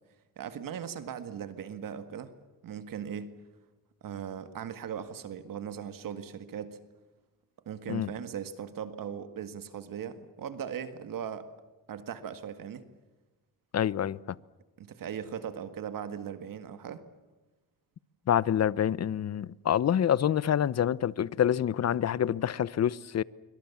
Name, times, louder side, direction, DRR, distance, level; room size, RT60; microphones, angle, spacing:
voice 1, 0.4-2.3 2.6-3.3 4.0-6.8 7.7-11.5 11.9-12.8 14.8-17.0, right 8 dB, 65° right, 1.9 m, -38 dB
voice 2, 13.7-14.4 18.3-23.2, left 9 dB, 45° left, 0.8 m, -27 dB
27.0 x 24.0 x 7.2 m
cardioid pair, 100°, 36 cm